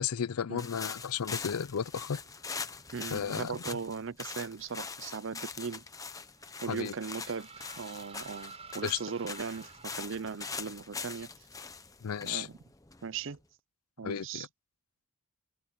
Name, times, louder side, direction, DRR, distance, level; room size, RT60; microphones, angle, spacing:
voice 1, 0.0-2.2 3.1-3.5 6.7-6.9 8.8-9.0 12.0-12.5 14.0-14.5, left 7 dB, 90° left, 0.5 m, -33 dB
sound 1, 0.6-13.4, left 4 dB, 15° left, 0.9 m, -43 dB
voice 2, 2.9-5.8 6.6-7.5 7.8-11.3 12.2-12.6 13.0-13.4 14.0-14.5, right 5 dB, 55° right, 0.6 m, -38 dB
sound 2, 6.3-10.7, right 5 dB, 25° right, 5.0 m, -51 dB
open air
head